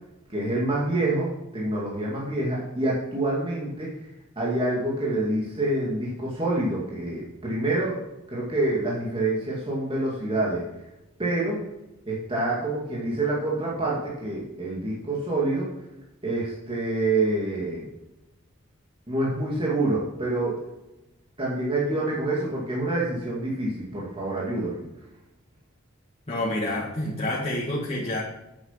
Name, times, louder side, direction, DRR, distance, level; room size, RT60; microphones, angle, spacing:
voice 1, 0.3-3.9 4.4-8.0 8.3-10.7 11.2-11.6 12.1-15.7 16.2-17.9 19.1-20.6 21.4-24.8, right 2 dB, 25° right, -5 dB, 2.4 m, -27 dB
voice 2, 26.3-28.2, left 1 dB, 30° left, -6 dB, 1.9 m, -28 dB
9.0 x 8.0 x 5.8 m, 0.96 s
head